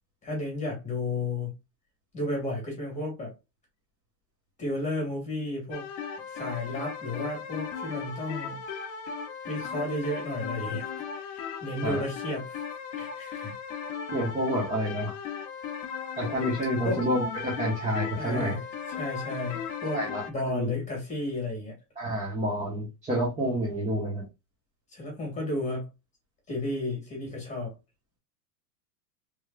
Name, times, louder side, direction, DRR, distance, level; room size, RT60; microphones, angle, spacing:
voice 1, 0.2-1.5 2.1-3.3 4.6-5.9 6.3-8.6 9.5-12.6 13.0-13.5 16.8-17.0 18.2-20.0 20.3-21.8 24.9-25.9 26.5-27.7, left 2 dB, 15° left, 1.9 m, -33 dB
sound 1, 5.7-20.3, left 6 dB, 45° left, 0.8 m, -37 dB
voice 2, 14.1-15.1 16.2-18.6 19.9-20.2 20.5-20.7 22.0-24.2, equal, 15° right, 1.1 m, -29 dB
3.4 x 3.1 x 2.3 m
supercardioid pair, 140°, 49 cm